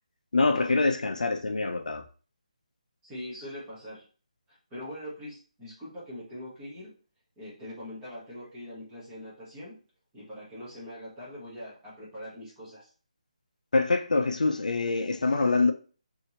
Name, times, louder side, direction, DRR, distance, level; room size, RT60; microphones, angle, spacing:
voice 1, 0.3-2.0 13.7-15.7, left 3 dB, 90° left, 0.6 m, -25 dB
voice 2, 3.0-4.0 4.7-6.9 7.4-9.7 10.1-12.9, left 1 dB, 5° right, 0.9 m, -42 dB
4.4 x 2.7 x 2.8 m
hypercardioid pair, 180°, 4 cm